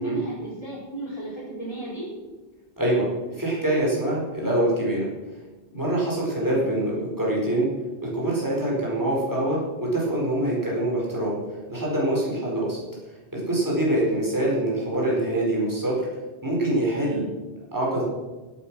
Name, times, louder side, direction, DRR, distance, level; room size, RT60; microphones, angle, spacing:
voice 1, 0.0-2.1 6.5-6.7, right 1 dB, 25° left, -8 dB, 4.5 m, -34 dB
voice 2, 2.8-3.1 3.3-5.1 5.7-7.7 8.0-11.4 11.7-12.8 13.3-16.1 16.4-17.3 17.7-18.0, right 1 dB, 15° right, -5 dB, 4.8 m, -24 dB
16.5 x 8.9 x 6.2 m, 1.2 s
omnidirectional pair, 1.2 m